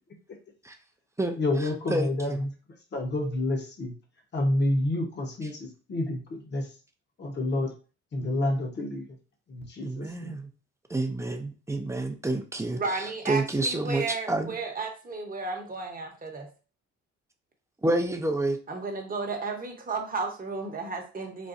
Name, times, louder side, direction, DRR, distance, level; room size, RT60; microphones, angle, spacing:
voice 1, 1.4-2.5 2.9-3.9 4.3-6.7 7.2-7.7 8.1-9.0 9.5-10.4, left 1 dB, 35° left, 2 dB, 0.9 m, -29 dB
voice 2, 1.9-2.4 9.8-10.5 10.9-14.6 17.8-18.6, right 2 dB, 10° right, 4 dB, 0.5 m, -29 dB
voice 3, 12.7-16.5 18.7-21.5, right 4 dB, 30° right, 3 dB, 0.9 m, -33 dB
4.0 x 2.2 x 2.5 m, 0.35 s
cardioid pair, 90°, 30 cm